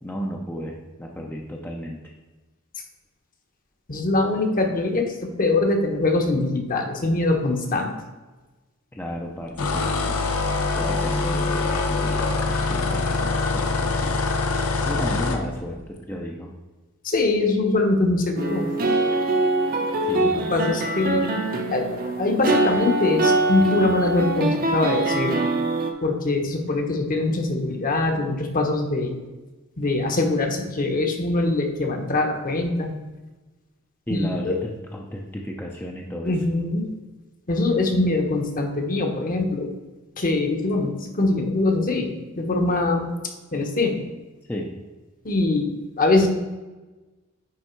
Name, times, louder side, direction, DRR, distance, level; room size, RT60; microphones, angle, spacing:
voice 1, 0.0-2.1 8.9-10.3 10.7-14.2 14.8-16.5 20.0-20.7 34.1-36.3 44.4-44.7, equal, 10° left, 0 dB, 0.6 m, -33 dB
voice 2, 3.9-7.9 17.0-18.7 20.5-21.3 21.7-25.4 26.0-29.1 29.8-32.9 34.1-34.6 36.2-36.9 37.5-39.7 40.2-43.1 43.5-44.0 45.2-46.3, left 2 dB, 40° left, 3 dB, 1.0 m, -23 dB
sound 1, 9.6-15.4, left 3 dB, 90° left, 0.8 m, -24 dB
sound 2, 18.4-25.9, right 2 dB, 45° right, 0.8 m, -23 dB
9.9 x 3.6 x 4.5 m, 1.2 s
head